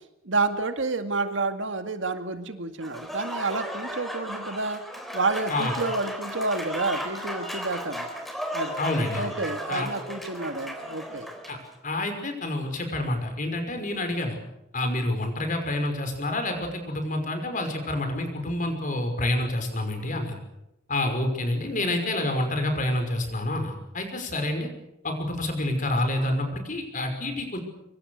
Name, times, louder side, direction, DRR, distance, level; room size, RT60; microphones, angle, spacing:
voice 1, 0.2-4.8 5.1-8.1 8.5-8.8 9.1-11.3, right 3 dB, 70° right, 8 dB, 2.1 m, -29 dB
Applause / Crowd, 2.8-11.6, equal, ahead, 3.8 m, -35 dB
voice 2, 8.8-9.3 9.7-9.9 11.5-11.6 11.8-14.4 14.7-20.4 20.9-24.7 25.0-27.6, left 1 dB, 40° left, 6 dB, 5.7 m, -28 dB
25.5 x 24.5 x 6.6 m, 0.86 s
head